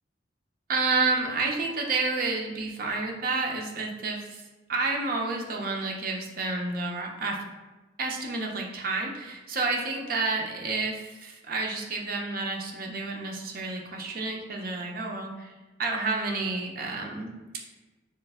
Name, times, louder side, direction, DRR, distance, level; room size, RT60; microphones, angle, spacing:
voice 1, 0.7-4.4 4.7-7.4 8.0-15.5 15.8-17.3, right 3 dB, 50° right, 0 dB, 0.5 m, -30 dB
3.1 x 2.3 x 3.4 m, 1.2 s
head